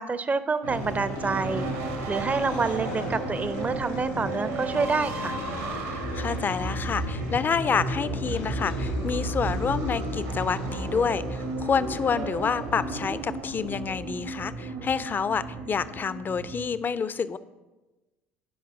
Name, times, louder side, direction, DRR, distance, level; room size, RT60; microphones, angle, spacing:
voice 1, 0.0-1.7 2.1-5.4, right 4 dB, 25° right, 14 dB, 0.5 m, -28 dB
sound 1, 0.6-16.7, right 3 dB, 75° right, 1.4 m, -33 dB
sound 2, 0.7-13.6, left 4 dB, 75° left, 1.7 m, -39 dB
voice 2, 5.8-17.4, left 6 dB, 30° left, 15 dB, 0.5 m, -28 dB
9.4 x 5.3 x 6.3 m, 1.1 s
hypercardioid pair, 60°, 6 cm